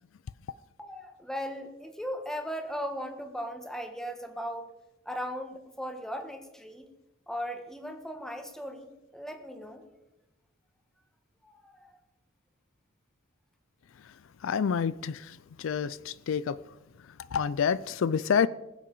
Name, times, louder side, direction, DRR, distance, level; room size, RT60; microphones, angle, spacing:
voice 1, 0.8-4.7 5.0-6.9 7.3-9.9 11.4-12.0, equal, ahead, 1.3 m, -38 dB
voice 2, 14.4-16.6 17.0-18.5, left 7 dB, 65° left, 0.4 m, -28 dB
20.5 x 7.4 x 5.4 m
head